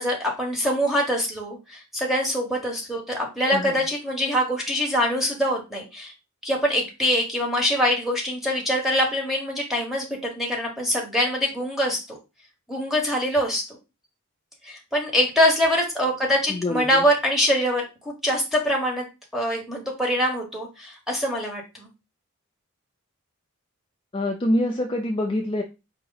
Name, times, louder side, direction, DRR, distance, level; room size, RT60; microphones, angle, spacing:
voice 1, 0.0-6.1 6.4-12.2 12.7-13.8 14.6-19.0 19.3-21.9, equal, ahead, -1 dB, 1.1 m, -24 dB
voice 2, 16.5-17.0 24.1-25.6, left 1 dB, 25° left, 2 dB, 0.4 m, -25 dB
4.7 x 2.9 x 3.9 m, 0.27 s
head